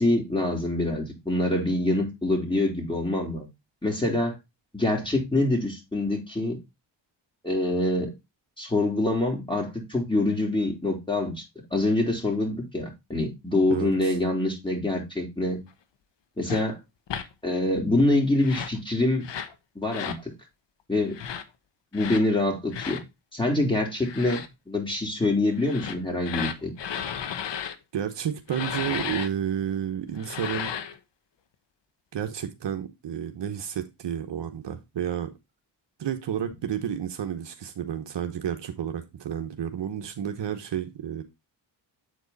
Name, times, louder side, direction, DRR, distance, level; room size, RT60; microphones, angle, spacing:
voice 1, 0.0-3.5 3.8-4.4 4.7-6.6 7.4-8.1 8.6-11.4 11.7-15.6 16.4-16.8 17.4-19.2 19.7-20.3 20.9-21.2 21.9-23.0 23.3-26.7, left 2 dB, 10° left, 3.3 m, -25 dB
voice 2, 13.7-14.1 27.9-30.7 32.1-35.3 36.0-41.2, right 9 dB, 60° right, 1.1 m, -31 dB
sound 1, 16.5-16.6 17.1-17.3 18.4-18.8 19.2-19.5 19.9-20.2 21.1-21.4 21.9-22.2 22.7-23.0 24.0-24.5 25.6-27.8 28.5-29.3 30.2-31.0, left 8 dB, 60° left, 1.0 m, -33 dB
8.2 x 4.6 x 4.0 m
cardioid pair, 75°, 48 cm